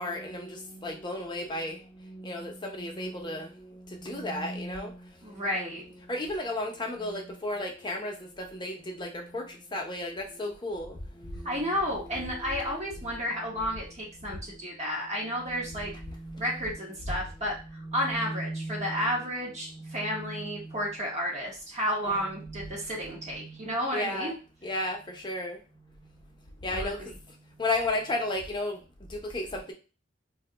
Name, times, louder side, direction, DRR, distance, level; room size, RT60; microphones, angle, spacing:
voice 1, 0.0-5.7 6.0-13.9 14.2-14.7 15.3-16.7 17.7-19.2 19.6-20.8 22.0-24.3 24.6-28.8 29.1-29.7, left 1 dB, 25° left, 0.7 m, -35 dB
voice 2, 5.2-5.9 11.4-15.9 16.4-24.4 26.7-27.1, equal, 35° right, 1.0 m, -32 dB
2.6 x 2.2 x 3.8 m
head